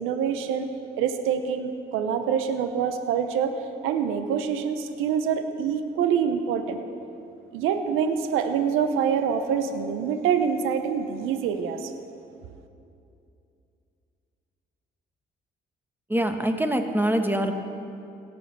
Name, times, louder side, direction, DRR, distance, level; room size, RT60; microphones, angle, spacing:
voice 1, 0.0-3.6 3.8-6.8 7.5-11.9, right 7 dB, 90° right, 8 dB, 0.7 m, -26 dB
voice 2, 16.1-17.5, right 1 dB, 10° right, 6 dB, 1.2 m, -24 dB
17.0 x 6.3 x 5.9 m, 2.6 s
supercardioid pair, 60°, 20 cm